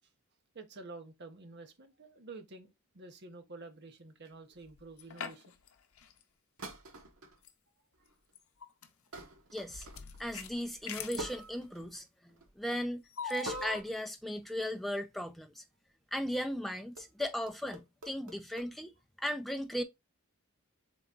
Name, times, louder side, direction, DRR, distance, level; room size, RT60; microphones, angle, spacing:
voice 1, 0.5-5.5 8.0-8.1, right 3 dB, 50° right, 0.8 m, -49 dB
sound 1, 4.2-4.6 6.6-7.4 7.9-8.3 9.1-10.3 11.2-12.0 12.3-12.6 13.4-14.0 14.4-14.6 16.3-16.5 17.0-18.7, right 1 dB, 75° right, 1.3 m, -47 dB
sound 2, 4.7-5.7 6.0-6.1 7.5-7.6 8.4-8.9 9.7-11.3 13.2-13.8, left 5 dB, 75° left, 0.6 m, -41 dB
voice 2, 9.5-9.9 10.2-15.6 16.1-18.9 19.2-19.8, equal, ahead, 0.4 m, -37 dB
3.9 x 3.5 x 3.7 m
head